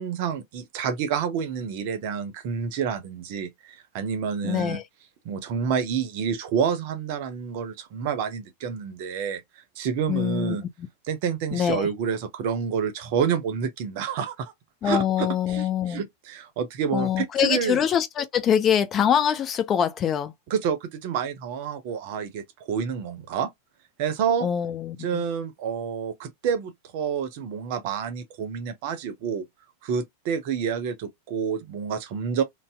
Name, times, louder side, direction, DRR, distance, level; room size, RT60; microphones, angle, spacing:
voice 1, 0.0-4.8 5.2-9.4 9.8-10.6 11.1-14.5 14.8-17.8 20.5-23.5 24.0-24.5 25.0-29.5 29.8-32.4, right 7 dB, 50° right, 0.7 m, -28 dB
voice 2, 4.4-4.8 10.1-10.6 11.5-11.9 14.8-16.0 16.9-20.3 24.4-25.2, left 9 dB, 30° left, 0.5 m, -24 dB
2.6 x 2.0 x 3.4 m
figure-of-eight pair, 90°, 0 cm